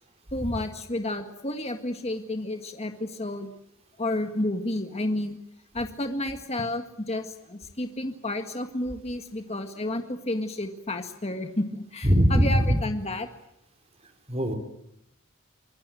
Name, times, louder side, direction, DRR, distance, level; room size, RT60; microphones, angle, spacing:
voice 1, 0.3-3.5 4.0-5.4 5.7-13.3, left 1 dB, 30° left, 6 dB, 1.8 m, -31 dB
voice 2, 12.0-12.8 14.3-14.5, equal, 30° right, 3 dB, 3.9 m, -21 dB
25.5 x 21.5 x 9.2 m, 0.79 s
head